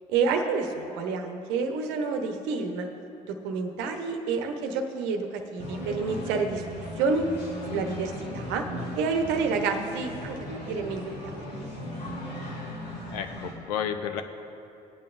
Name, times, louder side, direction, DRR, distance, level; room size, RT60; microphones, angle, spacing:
voice 1, 0.1-2.9 3.4-6.6 7.0-7.3 7.7-8.6 8.9-10.4 10.7-11.7, right 4 dB, 60° right, 5 dB, 1.0 m, -29 dB
sound 1, 5.6-13.5, equal, 85° left, 1.5 m, -37 dB
voice 2, 13.1-14.2, left 8 dB, 65° left, 8 dB, 0.7 m, -31 dB
18.5 x 8.6 x 2.5 m, 2.7 s
figure-of-eight pair, 60°, 21 cm